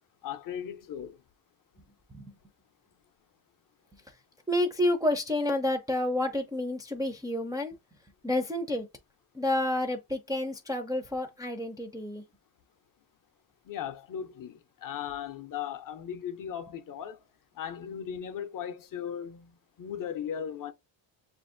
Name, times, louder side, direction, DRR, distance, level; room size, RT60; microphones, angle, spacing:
voice 1, 0.2-1.2 13.7-17.2 17.6-20.7, left 9 dB, 45° left, 0.5 m, -37 dB
voice 2, 4.5-7.7 8.2-8.9 9.3-12.2, left 1 dB, 10° right, 0.4 m, -29 dB
7.1 x 2.5 x 2.5 m
cardioid pair, 140°, 46 cm